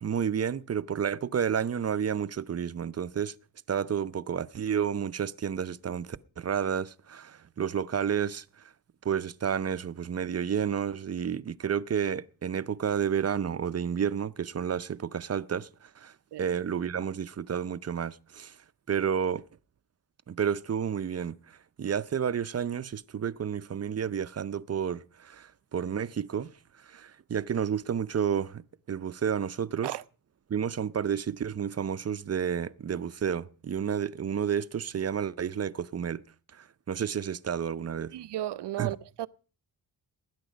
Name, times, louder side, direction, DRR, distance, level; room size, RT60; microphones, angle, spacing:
voice 1, 0.0-3.3 3.7-8.7 9.0-16.1 16.4-18.5 18.9-19.4 20.3-26.5 26.8-29.9 30.5-36.2 36.5-38.1 38.8-38.9, right 8 dB, 35° right, 0.6 m, -31 dB
voice 2, 38.1-39.3, right 13 dB, 75° right, 0.7 m, -34 dB
19.5 x 9.8 x 5.1 m
cardioid pair, 90°, 41 cm